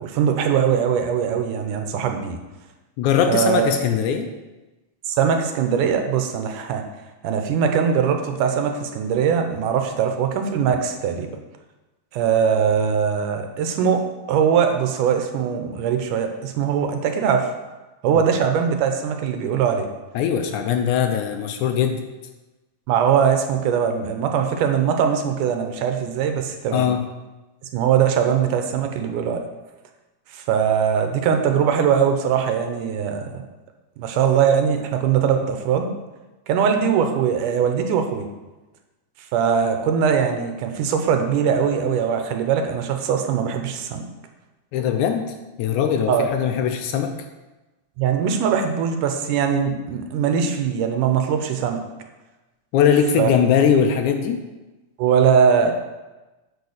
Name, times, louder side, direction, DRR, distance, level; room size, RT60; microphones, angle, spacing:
voice 1, 0.0-2.4 3.3-3.7 5.1-6.8 7.2-11.3 12.1-14.0 14.3-17.5 18.0-19.9 22.9-26.9 27.7-29.4 30.3-33.4 34.0-35.9 36.5-38.3 39.3-44.1 46.1-46.3 48.0-51.8 53.2-53.3 55.0-55.7, right 7 dB, 80° right, 5 dB, 2.3 m, -21 dB
voice 2, 3.0-4.3 18.1-18.3 20.1-22.0 26.7-27.1 44.7-47.1 52.7-54.4, left 8 dB, 75° left, 6 dB, 2.0 m, -20 dB
9.5 x 4.7 x 6.5 m, 1.1 s
omnidirectional pair, 3.8 m